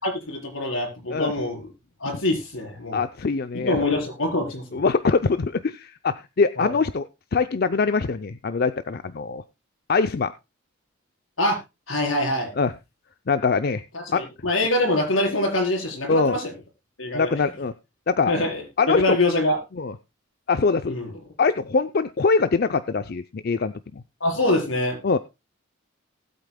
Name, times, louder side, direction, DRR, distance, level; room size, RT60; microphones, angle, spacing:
voice 1, 0.0-1.7 2.0-3.0 3.5-4.8 6.6-6.8 11.4-11.6 11.9-12.5 13.9-16.5 17.0-17.3 18.3-19.6 20.9-21.1 24.2-25.0, left 1 dB, 85° left, 1 dB, 4.4 m, -24 dB
voice 2, 2.9-3.8 4.7-9.4 9.9-10.3 12.6-12.7 13.3-13.8 14.1-14.2 16.1-16.4 17.1-17.7 18.1-18.3 18.8-19.2 19.8-19.9 20.5-21.0 21.4-24.0 25.0-25.2, left 4 dB, 50° left, 11 dB, 0.5 m, -23 dB
19.5 x 8.5 x 2.2 m, 0.24 s
head